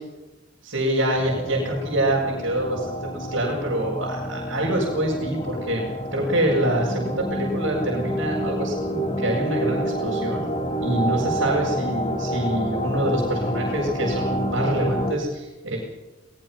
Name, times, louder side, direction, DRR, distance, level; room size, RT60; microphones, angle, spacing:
voice 1, 0.6-10.4 10.8-15.8, right 1 dB, 70° right, -4 dB, 6.3 m, -25 dB
sound 1, 1.1-15.1, equal, 30° left, 2.3 m, -28 dB
22.5 x 20.0 x 6.1 m, 1.1 s
head